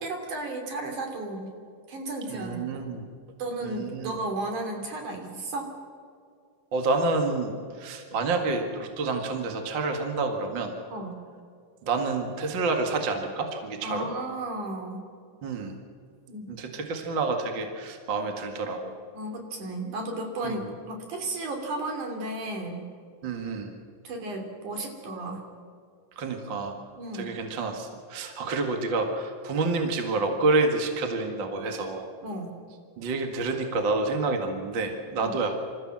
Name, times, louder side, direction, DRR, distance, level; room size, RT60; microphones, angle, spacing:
voice 1, 0.0-1.5 1.9-2.8 3.4-5.7 10.9-11.2 13.8-15.1 16.3-16.5 19.1-22.9 24.0-25.4 27.0-27.3 32.2-32.5 35.2-35.3, right 2 dB, 65° right, 3 dB, 4.3 m, -34 dB
voice 2, 2.3-3.1 3.6-4.1 6.7-10.7 11.8-14.1 15.4-15.7 16.5-18.9 20.4-20.7 23.2-23.7 26.2-26.8 27.1-32.1 33.0-35.6, right 3 dB, 40° right, 4 dB, 2.1 m, -28 dB
27.0 x 14.5 x 7.6 m, 2.3 s
omnidirectional pair, 3.9 m